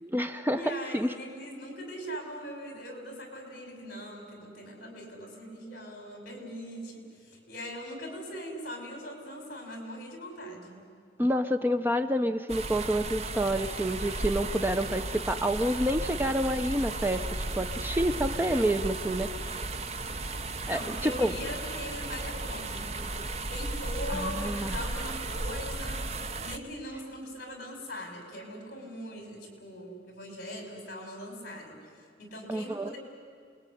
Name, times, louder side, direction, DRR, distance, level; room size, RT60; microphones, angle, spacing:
voice 1, 0.0-0.6 0.9-1.1 11.2-19.6 20.7-21.3 24.1-24.8 32.5-32.9, equal, 10° right, 8 dB, 0.6 m, -28 dB
voice 2, 0.5-10.8 20.7-31.8 32.2-33.0, equal, 55° left, 3 dB, 6.5 m, -41 dB
sound 1, 12.5-26.6, right 2 dB, 35° right, 0.9 m, -35 dB
28.0 x 21.0 x 9.9 m, 2.2 s
head